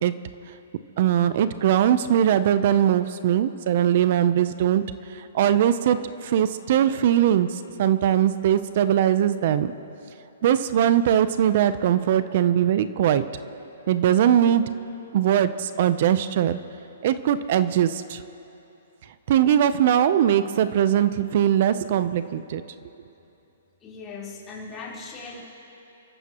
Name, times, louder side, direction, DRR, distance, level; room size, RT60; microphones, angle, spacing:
voice 1, 1.0-4.8 5.1-9.7 10.4-13.3 13.9-14.7 15.1-16.6 17.0-18.2 19.3-22.6, right 10 dB, 45° right, 13 dB, 0.6 m, -21 dB
voice 2, 23.8-25.4, left 4 dB, 20° left, -6 dB, 3.8 m, -38 dB
29.5 x 14.0 x 3.0 m, 2.9 s
hypercardioid pair, 155°, 0 cm